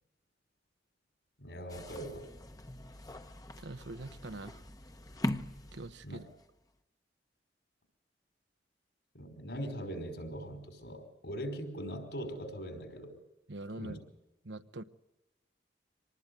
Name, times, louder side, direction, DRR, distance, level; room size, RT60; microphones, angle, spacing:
voice 1, 1.4-2.3 6.0-6.3 9.1-13.2 13.8-14.0, equal, 75° left, 5 dB, 5.2 m, -41 dB
sound 1, 1.7-6.5, left 1 dB, 20° left, 0.9 m, -41 dB
voice 2, 3.6-4.6 5.7-6.2 13.5-14.0 14.4-14.8, right 2 dB, 80° right, 11 dB, 1.0 m, -43 dB
26.0 x 19.5 x 8.3 m, 0.98 s
head